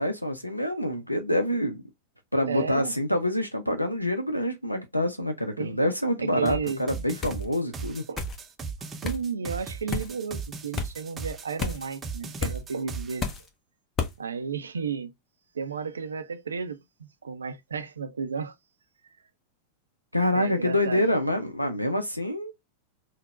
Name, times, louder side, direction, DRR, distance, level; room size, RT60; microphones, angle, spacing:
voice 1, 0.0-1.8 2.3-8.0 20.1-22.5, left 1 dB, 90° left, 0.4 m, -26 dB
voice 2, 2.5-2.9 5.6-5.8 6.2-6.8 8.1-8.2 9.0-13.3 14.2-15.1 15.5-18.6 20.3-21.1, right 5 dB, 70° right, 0.4 m, -33 dB
sound 1, 6.5-13.2, right 5 dB, 20° right, 0.5 m, -37 dB
sound 2, 7.2-7.5 8.2-8.4 9.0-9.2 9.9-10.1 10.8-10.9 11.6-11.9 12.4-12.6 13.2-13.5 14.0-14.2, left 5 dB, 25° left, 0.7 m, -31 dB
3.7 x 2.1 x 2.4 m
figure-of-eight pair, 90°, 0 cm